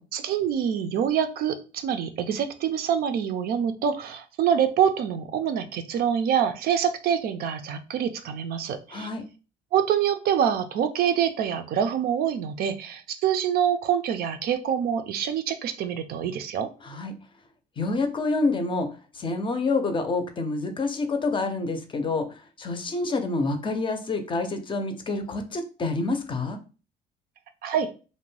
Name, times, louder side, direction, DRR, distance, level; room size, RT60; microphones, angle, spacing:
voice 1, 0.1-9.1 9.7-16.7 27.6-27.9, right 8 dB, 65° right, 9 dB, 0.4 m, -25 dB
voice 2, 8.9-9.2 16.8-17.1 17.8-18.9 19.1-22.3 22.6-26.6, left 3 dB, 30° left, 7 dB, 0.5 m, -27 dB
2.5 x 2.1 x 3.1 m, 0.34 s
cardioid pair, 110°, 17 cm